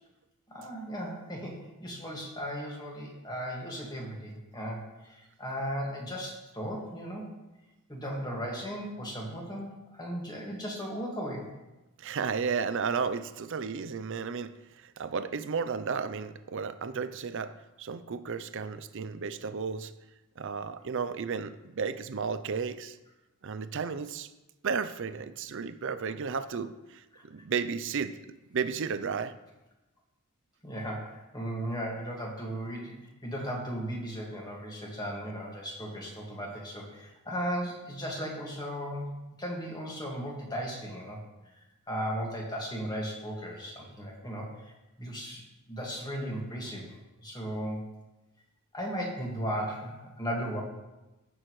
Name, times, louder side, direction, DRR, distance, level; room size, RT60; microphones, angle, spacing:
voice 1, 0.5-7.3 7.9-11.5 27.1-27.2 30.6-32.9 33.2-39.1 39.4-41.2 41.9-44.7 45.0-45.4 45.7-46.9 47.2-47.8 48.7-50.6, equal, 20° left, 1.9 m, -36 dB
voice 2, 12.0-17.5 17.8-19.9 20.4-23.0 23.4-24.3 24.6-28.2 28.5-29.3, right 5 dB, 60° right, 0.5 m, -33 dB
16.5 x 6.3 x 3.2 m
head